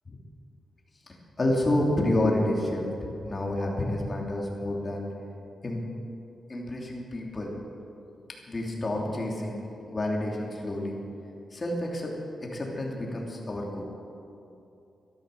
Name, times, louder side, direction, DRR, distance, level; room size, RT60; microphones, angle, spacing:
voice 1, 1.4-5.0 5.6-5.8 6.5-7.5 8.5-9.6 9.9-11.0 11.5-12.1 12.4-13.8, left 1 dB, 30° left, -1 dB, 2.9 m, -29 dB
13.0 x 12.5 x 6.9 m, 2.7 s
cardioid pair, 105°, 0 cm